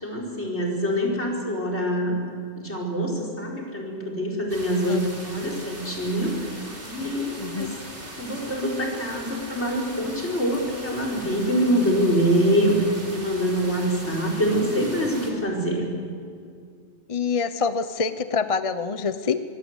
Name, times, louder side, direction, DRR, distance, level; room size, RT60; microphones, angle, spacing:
voice 1, 0.0-2.2 2.6-6.3 6.8-7.7 8.2-15.9, equal, 75° left, -1 dB, 5.1 m, -25 dB
sound 1, 4.5-15.3, right 1 dB, 75° right, 4.0 m, -40 dB
voice 2, 7.4-7.8 17.1-19.4, left 5 dB, 35° left, 11 dB, 0.8 m, -26 dB
26.0 x 22.0 x 8.1 m, 2.2 s
omnidirectional pair, 1.2 m